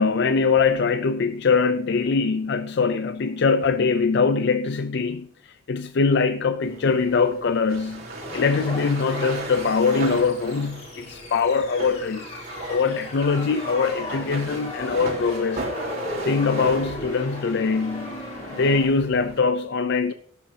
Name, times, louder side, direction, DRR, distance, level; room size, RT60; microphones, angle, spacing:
voice 1, 0.0-5.3 5.7-8.0 8.3-12.2 12.7-15.7 16.2-18.2 18.5-20.1, left 4 dB, 55° left, 0.4 m, -22 dB
sound 1, 6.6-19.4, right 2 dB, 45° right, 3.7 m, -37 dB
sound 2, 8.2-18.8, left 1 dB, 35° left, 3.7 m, -36 dB
12.5 x 11.5 x 2.8 m
head